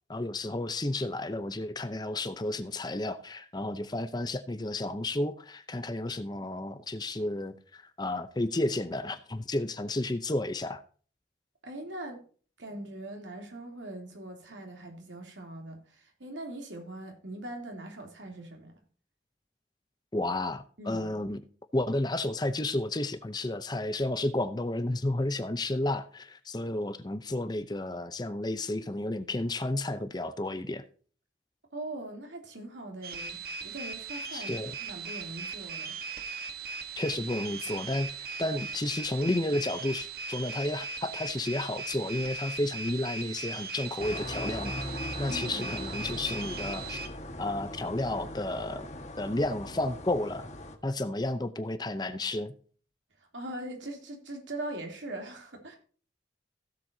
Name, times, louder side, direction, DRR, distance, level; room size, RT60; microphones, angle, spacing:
voice 1, 0.1-10.8 20.1-21.4 21.7-30.8 34.3-34.8 37.0-44.8 45.2-47.0 47.4-48.9 49.2-50.5 50.8-52.5, left 1 dB, 20° left, 0.7 m, -32 dB
voice 2, 11.6-12.2 12.6-18.7 20.8-21.0 31.7-34.6 34.9-36.0 45.3-45.8 53.3-55.8, right 1 dB, 85° right, 3.1 m, -41 dB
sound 1, 33.0-47.1, right 4 dB, 55° right, 1.4 m, -39 dB
sound 2, 44.0-50.8, left 1 dB, 40° left, 1.6 m, -40 dB
16.5 x 7.6 x 2.8 m
head